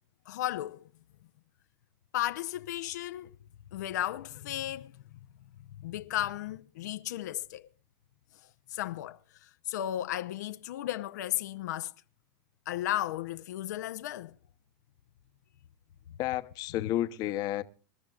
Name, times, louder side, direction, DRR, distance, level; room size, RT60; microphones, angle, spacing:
voice 1, 0.3-0.9 2.1-3.3 3.7-5.0 5.8-7.7 8.3-11.9 12.7-14.3, left 13 dB, 80° left, 0.7 m, -35 dB
voice 2, 16.2-17.6, left 13 dB, 45° left, 0.9 m, -31 dB
26.5 x 12.5 x 2.4 m
supercardioid pair, 135°, 9 cm